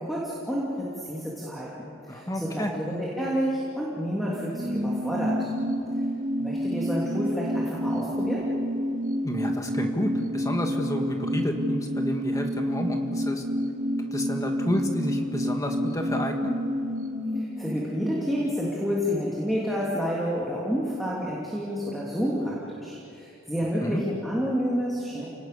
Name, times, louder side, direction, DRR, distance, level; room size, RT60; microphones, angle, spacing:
voice 1, 0.0-5.5 6.4-8.5 17.2-25.3, equal, ahead, -5 dB, 2.8 m, -29 dB
voice 2, 2.1-2.7 9.2-13.4 14.1-16.6 23.8-24.0, equal, 15° left, 3 dB, 1.8 m, -30 dB
sound 1, 4.2-19.2 19.5-19.6, equal, 40° right, 2.2 m, -29 dB
30.0 x 18.5 x 6.7 m, 2.6 s
head